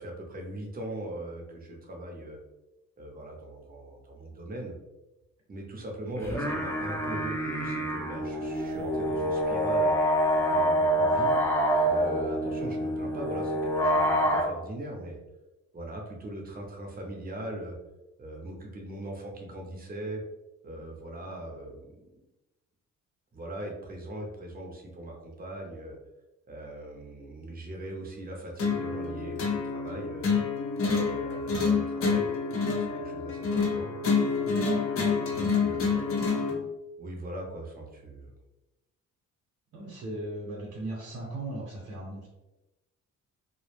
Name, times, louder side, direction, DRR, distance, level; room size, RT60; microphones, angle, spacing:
voice 1, 0.0-2.4 3.0-4.7 5.5-9.9 10.4-11.4 11.8-15.2 15.7-17.8 18.2-20.2 20.6-21.8 23.3-26.0 26.5-30.3 30.8-32.3 32.6-33.9 35.3-36.2 37.0-38.3, right 1 dB, 30° right, 0 dB, 0.7 m, -40 dB
sound 1, 6.2-14.4, equal, 10° left, 0.6 m, -26 dB
sound 2, 28.6-36.6, left 5 dB, 45° left, 0.6 m, -28 dB
voice 2, 39.7-42.3, right 1 dB, 75° right, -6 dB, 0.9 m, -37 dB
2.2 x 2.1 x 3.1 m, 0.98 s
cardioid pair, 90°, 30 cm